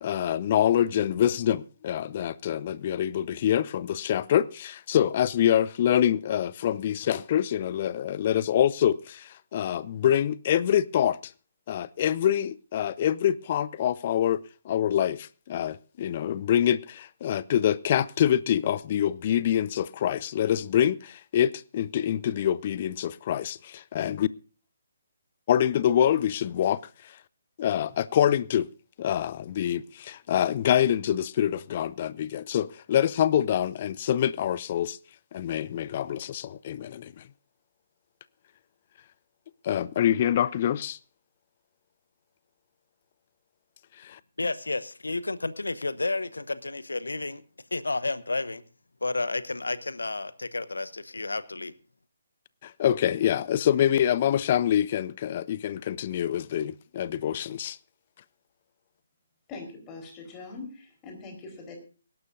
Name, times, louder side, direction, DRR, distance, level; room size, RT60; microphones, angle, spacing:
voice 1, 0.0-11.3 11.7-24.3 25.5-26.8 27.6-28.7 29.0-35.0 35.3-37.2 39.6-41.0 44.0-44.2 52.6-57.8, left 10 dB, 35° left, 0.5 m, -25 dB
voice 2, 44.4-47.4 47.7-48.6 49.0-51.7, left 3 dB, 70° left, 1.0 m, -31 dB
voice 3, 59.5-61.7, left 3 dB, 20° left, 4.1 m, -42 dB
23.5 x 11.5 x 2.6 m
figure-of-eight pair, 140°, 0 cm